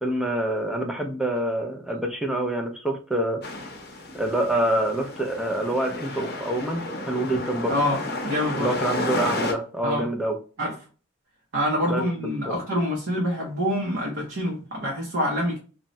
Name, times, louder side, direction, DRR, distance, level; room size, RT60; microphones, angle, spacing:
voice 1, 0.0-3.4 4.1-7.8 8.6-10.4 11.9-12.0 12.5-12.6, right 1 dB, ahead, 2 dB, 0.4 m, -26 dB
sound 1, 3.4-9.5, left 2 dB, 50° left, 0.7 m, -32 dB
voice 2, 7.7-8.7 9.8-10.1 10.6-10.7 11.5-15.6, equal, 55° right, -2 dB, 0.7 m, -26 dB
2.6 x 2.2 x 3.0 m, 0.37 s
head